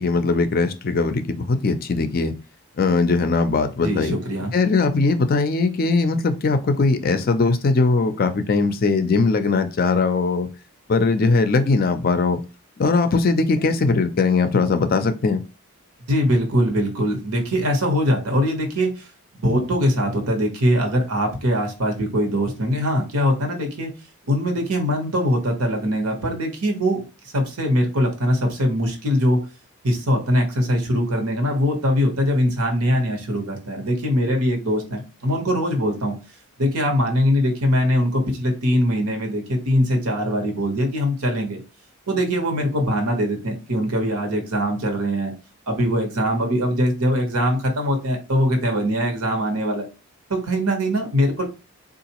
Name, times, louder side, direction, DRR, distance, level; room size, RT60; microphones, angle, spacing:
voice 1, 0.0-2.3 2.8-4.1 4.5-10.5 10.9-12.4 12.8-15.4, left 3 dB, 40° left, 9 dB, 0.4 m, -20 dB
voice 2, 3.8-4.5 16.1-19.1 19.3-23.9 24.3-27.0 27.3-29.4 29.8-36.2 36.6-41.6 42.1-45.3 45.7-49.8 50.3-51.4, equal, 90° right, 3 dB, 1.1 m, -22 dB
3.8 x 2.4 x 2.9 m, 0.31 s
head